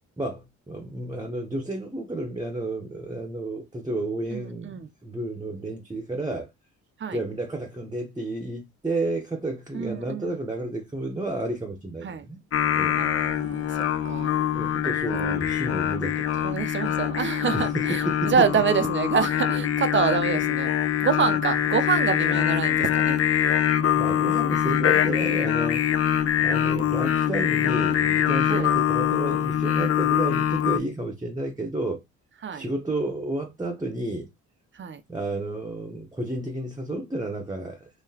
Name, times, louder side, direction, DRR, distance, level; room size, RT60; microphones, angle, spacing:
voice 1, 0.2-6.5 7.1-12.4 12.7-13.0 14.5-16.3 17.5-18.6 23.9-32.0 32.5-34.3 35.1-37.9, right 2 dB, 10° right, 0.8 m, -31 dB
voice 2, 4.3-4.9 7.0-7.2 9.7-10.4 12.0-12.3 13.0-14.4 16.4-20.7 21.0-23.2 28.4-28.7 32.4-32.7 34.7-35.0, right 6 dB, 40° right, 0.6 m, -27 dB
Singing, 12.5-30.8, left 10 dB, 50° left, 0.5 m, -24 dB
3.8 x 2.8 x 2.8 m
cardioid pair, 90°, 30 cm